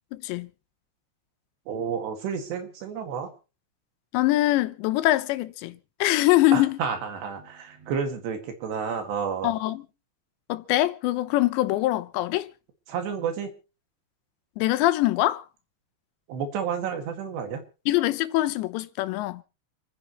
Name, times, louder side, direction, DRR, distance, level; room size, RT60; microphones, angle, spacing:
voice 1, 0.1-0.5 4.1-6.8 9.4-9.8 10.5-12.5 14.6-15.4 17.9-19.4, left 16 dB, 90° left, 3.1 m, -23 dB
voice 2, 1.7-3.3 6.5-9.5 12.9-13.5 16.3-17.6, right 6 dB, 75° right, 4.1 m, -30 dB
28.0 x 10.0 x 3.0 m
omnidirectional pair, 5.0 m